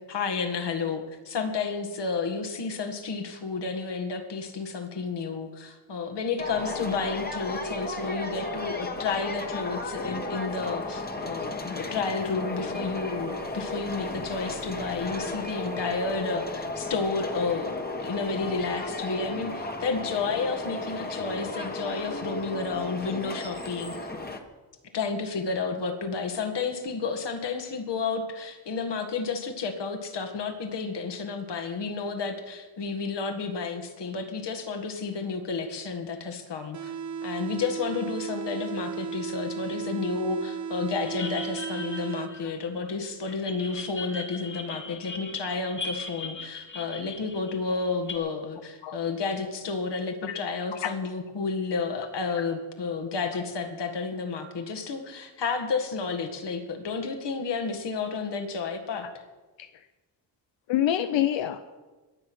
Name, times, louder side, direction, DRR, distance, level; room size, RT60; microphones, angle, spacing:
voice 1, 0.1-23.9 24.9-36.9 37.2-59.1, left 4 dB, 65° left, 6 dB, 2.0 m, -31 dB
sound 1, 6.4-24.4, left 2 dB, 20° left, 1.4 m, -34 dB
sound 2, 36.7-42.7, right 7 dB, 40° right, 0.7 m, -35 dB
sound 3, 41.1-42.9 43.3-48.2, left 3 dB, 40° left, 2.3 m, -39 dB
voice 2, 60.7-61.8, left 11 dB, 90° left, 10 dB, 0.7 m, -26 dB
21.0 x 7.8 x 6.3 m, 1.2 s
cardioid pair, 115°, 44 cm